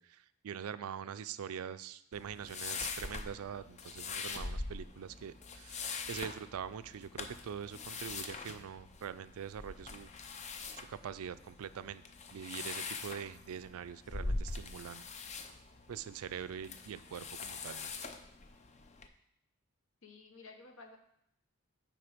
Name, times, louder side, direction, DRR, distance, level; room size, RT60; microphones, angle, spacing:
voice 1, 0.0-10.1 10.8-12.0 12.3-15.0 15.9-17.9, right 8 dB, 85° right, 15 dB, 0.4 m, -44 dB
sound 1, 2.1-19.1, left 3 dB, 35° left, 0.5 m, -43 dB
voice 2, 20.0-21.0, left 3 dB, 65° left, 5 dB, 1.0 m, -53 dB
9.4 x 3.8 x 5.1 m, 0.75 s
head